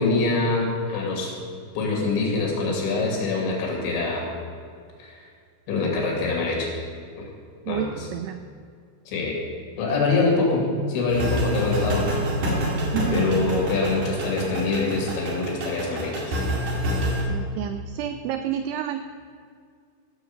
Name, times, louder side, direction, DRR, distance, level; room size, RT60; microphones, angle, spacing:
voice 1, 0.0-1.3 1.7-4.3 5.0-5.2 5.7-6.7 7.7-8.1 9.1-9.4 9.8-12.1 13.1-16.3, left 3 dB, 85° left, -1 dB, 4.9 m, -24 dB
voice 2, 7.7-8.4 12.9-13.3 17.3-19.0, right 9 dB, 85° right, 9 dB, 2.3 m, -29 dB
sound 1, 11.1-17.2, equal, 50° right, 2.9 m, -27 dB
15.0 x 7.0 x 6.7 m, 2.2 s
omnidirectional pair, 5.2 m